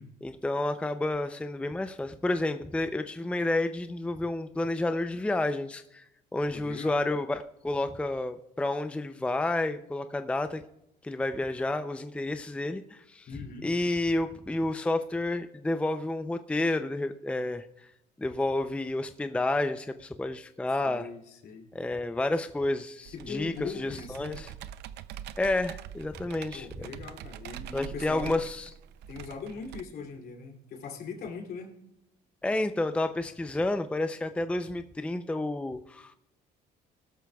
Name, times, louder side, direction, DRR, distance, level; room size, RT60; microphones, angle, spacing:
voice 1, 0.2-6.0 6.3-10.6 11.0-13.3 13.6-17.6 18.2-21.1 21.7-24.5 25.4-26.7 27.7-28.7 32.4-36.1, left 2 dB, 5° left, 9 dB, 0.5 m, -30 dB
voice 2, 6.5-7.1 13.3-13.7 20.8-21.7 23.1-24.4 26.5-28.4 29.1-31.7, left 5 dB, 65° left, 3 dB, 2.8 m, -40 dB
Computer keyboard, 23.1-29.8, right 10 dB, 80° right, 0.6 m, -44 dB
19.0 x 13.0 x 2.3 m, 0.85 s
cardioid pair, 110°, 17 cm